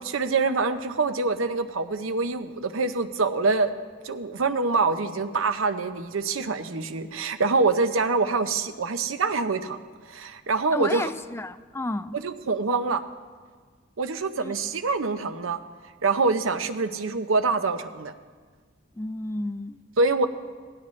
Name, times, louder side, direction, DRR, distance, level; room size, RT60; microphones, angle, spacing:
voice 1, 0.0-3.7 4.0-9.8 10.1-11.1 12.2-13.0 14.0-15.6 16.0-18.1 20.0-20.3, right 3 dB, 90° right, 9 dB, 0.8 m, -25 dB
voice 2, 10.7-12.2 14.4-14.5 18.9-19.8, left 2 dB, 15° left, 12 dB, 0.4 m, -32 dB
17.5 x 16.5 x 3.2 m, 1.5 s
head